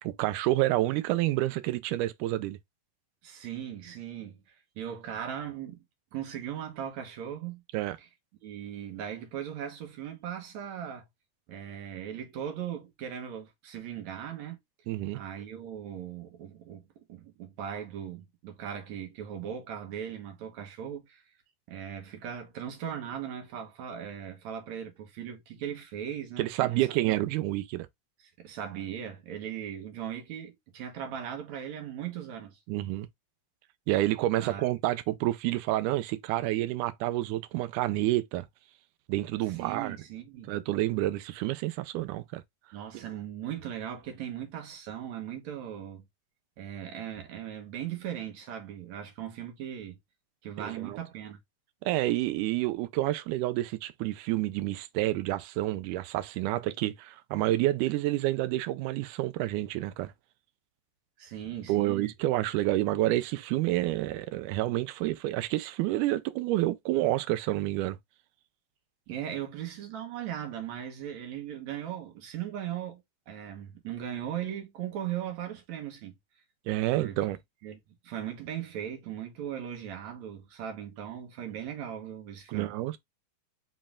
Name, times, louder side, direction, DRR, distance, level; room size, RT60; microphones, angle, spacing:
voice 1, 0.0-2.6 7.7-8.0 14.9-15.2 26.4-27.9 32.7-33.1 33.9-38.5 39.1-40.0 40.5-42.4 50.6-51.0 51.8-60.1 61.7-68.0 76.7-77.4 82.5-83.0, right 16 dB, 80° right, 2.0 m, -29 dB
voice 2, 3.2-4.4 4.8-5.8 6.1-7.6 8.0-8.1 8.4-11.1 11.5-14.6 15.1-16.8 17.1-21.2 21.7-27.1 28.4-32.6 34.4-34.7 39.4-40.5 42.7-46.0 46.6-50.0 50.4-51.4 61.2-62.1 69.1-76.2 77.0-77.2 77.6-77.8 78.0-82.8, right 9 dB, 65° right, 2.3 m, -38 dB
5.3 x 3.9 x 2.4 m
omnidirectional pair, 3.7 m